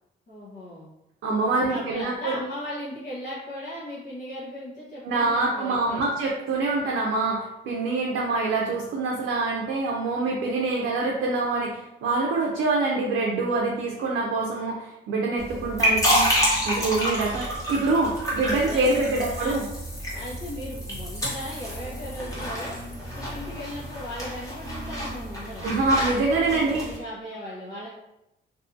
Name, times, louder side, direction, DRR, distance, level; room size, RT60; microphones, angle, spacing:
voice 1, 0.3-0.9 1.5-6.1 18.4-19.6 20.1-22.8 23.1-25.7 26.5-27.9, left 1 dB, 40° left, -9 dB, 0.9 m, -37 dB
voice 2, 1.2-2.4 5.0-16.3 16.6-19.6 25.6-27.0, right 3 dB, 80° right, -2 dB, 0.5 m, -25 dB
sound 1, 15.4-27.0, equal, 15° left, 1.1 m, -29 dB
2.6 x 2.3 x 2.5 m, 0.88 s
cardioid pair, 90°, 20 cm